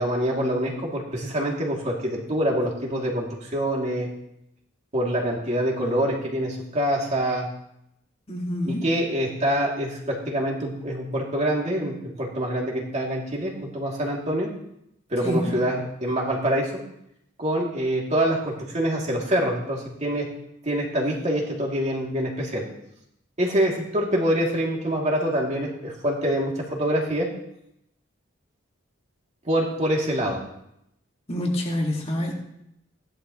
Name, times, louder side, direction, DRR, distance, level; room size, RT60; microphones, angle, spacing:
voice 1, 0.0-4.1 4.9-7.5 8.6-14.5 15.1-16.8 17.4-20.3 20.6-22.6 23.4-27.3 29.4-30.4, right 1 dB, 35° right, -2 dB, 2.7 m, -25 dB
voice 2, 8.3-8.8 15.2-15.6 31.3-32.3, left 1 dB, 30° left, -1 dB, 2.1 m, -27 dB
15.5 x 11.5 x 3.1 m, 0.79 s
head